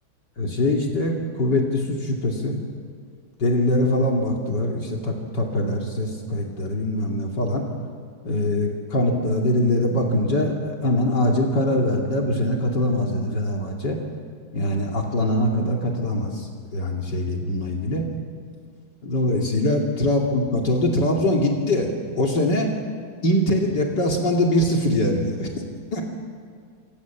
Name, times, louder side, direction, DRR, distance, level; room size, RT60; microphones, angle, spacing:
voice 1, 0.4-2.6 3.4-7.6 8.2-14.0 14.5-18.1 19.0-21.9 22.2-22.7 23.2-25.5 25.9-26.0, left 1 dB, 65° left, 0 dB, 3.2 m, -23 dB
27.0 x 26.0 x 7.2 m, 2.1 s
omnidirectional pair, 2.1 m